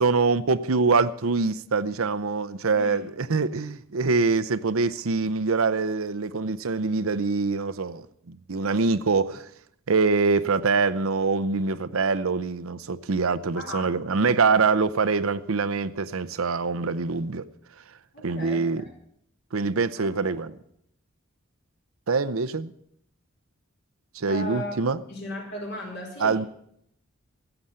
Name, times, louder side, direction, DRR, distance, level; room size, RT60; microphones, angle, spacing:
voice 1, 0.0-9.4 9.9-17.4 18.2-18.8 19.5-20.5 22.1-22.7 24.1-25.0 26.2-26.5, right 4 dB, 75° right, 0.7 m, -24 dB
voice 2, 2.7-3.1 13.5-13.9 18.1-18.7 20.0-20.1 24.3-24.8 25.1-26.5, left 1 dB, 55° left, 4.8 m, -36 dB
15.5 x 8.0 x 8.7 m
head